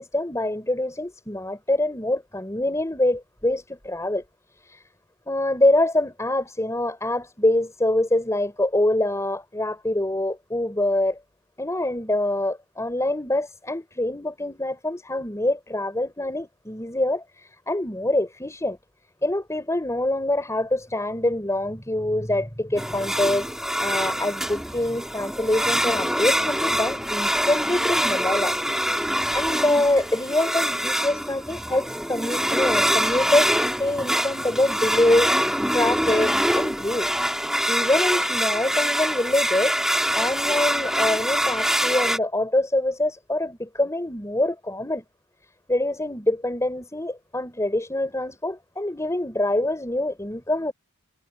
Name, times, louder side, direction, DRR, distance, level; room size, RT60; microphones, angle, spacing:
voice 1, 0.0-4.2 4.6-4.8 5.3-11.2 11.6-18.8 19.2-23.5 23.8-28.6 29.3-37.1 37.7-39.8 40.1-45.0 45.7-50.7, left 1 dB, 15° left, 4.3 m, -25 dB
sound 1, 22.8-42.2, equal, ahead, 2.3 m, -24 dB
head